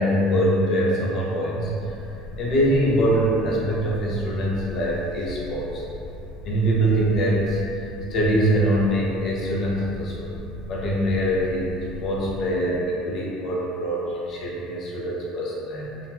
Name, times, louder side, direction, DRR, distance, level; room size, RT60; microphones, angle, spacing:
voice 1, 0.0-2.1 2.4-5.8 6.4-10.3 10.7-11.7 12.0-16.1, equal, 35° left, -4 dB, 0.7 m, -23 dB
sound 1, 1.5-12.5, left 1 dB, 80° left, 0.4 m, -39 dB
3.8 x 2.1 x 4.4 m, 2.7 s
cardioid pair, 180°, 0 cm